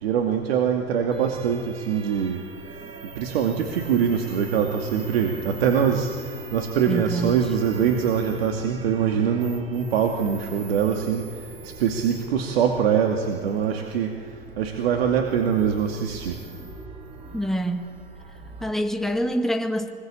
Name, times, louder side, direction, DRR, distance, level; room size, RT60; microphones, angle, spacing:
voice 1, 0.0-2.4 3.2-6.1 6.5-11.2 11.6-14.2 14.6-16.3, right 7 dB, 75° right, 3 dB, 2.4 m, -23 dB
sound 1, 1.1-18.7, right 3 dB, 20° right, 3.4 m, -41 dB
voice 2, 6.9-7.4 17.3-17.9 18.6-19.9, equal, ahead, 4 dB, 2.1 m, -26 dB
25.0 x 21.0 x 8.9 m, 2.3 s
hypercardioid pair, 110°, 30 cm